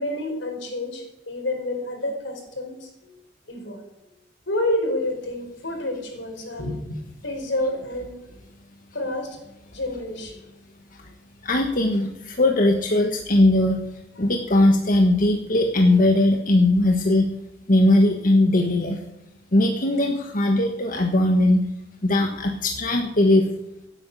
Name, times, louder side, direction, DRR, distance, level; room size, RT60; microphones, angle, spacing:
voice 1, 0.0-3.2 3.5-3.8 4.5-8.2 8.9-9.4 9.7-10.4, left 1 dB, 80° left, 4 dB, 4.6 m, -29 dB
voice 2, 11.4-13.8 14.2-17.3 17.7-19.0 19.5-21.6 22.0-23.5, left 1 dB, 50° left, 3 dB, 1.5 m, -19 dB
16.0 x 9.1 x 8.4 m, 0.87 s
head